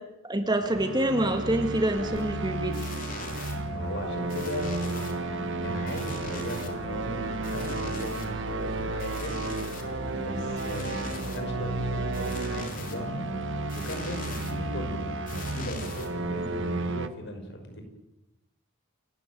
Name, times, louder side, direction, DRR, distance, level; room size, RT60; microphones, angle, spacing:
voice 1, 0.2-2.8, right 1 dB, 20° right, 6 dB, 1.8 m, -26 dB
sound 1, 0.6-17.1, right 2 dB, 55° right, 1.2 m, -33 dB
sound 2, 2.0-16.6, equal, 40° left, 3.5 m, -39 dB
voice 2, 3.7-5.1 5.6-9.3 10.2-17.8, left 1 dB, 55° left, 5 dB, 5.5 m, -38 dB
29.0 x 14.0 x 9.1 m, 0.95 s
head